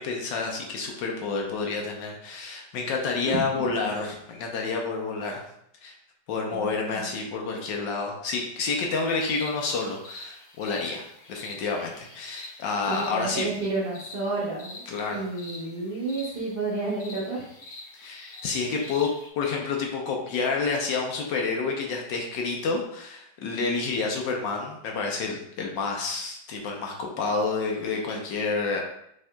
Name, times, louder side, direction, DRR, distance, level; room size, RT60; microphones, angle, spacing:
voice 1, 0.0-5.4 5.8-5.9 6.3-13.5 14.9-15.2 17.9-19.1 19.4-28.8, left 4 dB, 75° left, 1 dB, 1.4 m, -29 dB
voice 2, 3.2-3.6 6.5-7.2 12.9-14.8 15.1-17.4, right 3 dB, 35° right, -8 dB, 1.0 m, -31 dB
sound 1, 9.1-19.3, left 2 dB, 55° left, 1.4 m, -45 dB
6.3 x 3.5 x 2.2 m, 0.74 s
omnidirectional pair, 2.1 m